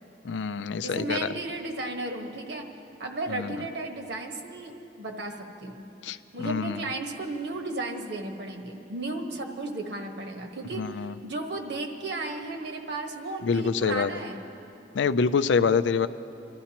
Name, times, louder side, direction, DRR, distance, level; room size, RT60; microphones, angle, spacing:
voice 1, 0.2-1.3 3.3-3.5 6.0-6.8 10.7-11.1 13.4-14.1 14.9-16.1, left 5 dB, 70° left, 12 dB, 0.4 m, -26 dB
voice 2, 0.8-2.7 3.0-5.8 6.3-14.4, right 2 dB, 70° right, 3 dB, 1.3 m, -34 dB
26.5 x 13.5 x 2.9 m, 2.9 s
head